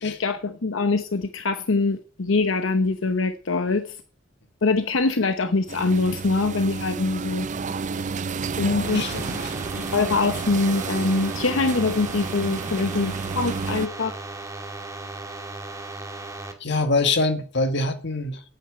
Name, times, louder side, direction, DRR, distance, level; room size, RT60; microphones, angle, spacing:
voice 1, 0.0-3.9 4.6-7.5 8.6-9.0 9.8-14.1, left 3 dB, 85° left, 0.9 m, -23 dB
sound 1, 5.7-13.9, right 5 dB, 40° right, 0.5 m, -31 dB
voice 2, 8.6-9.6 16.6-18.4, left 3 dB, 65° left, 1.8 m, -25 dB
sound 2, 8.8-16.5, right 2 dB, 15° right, 2.1 m, -36 dB
8.9 x 8.8 x 8.8 m
head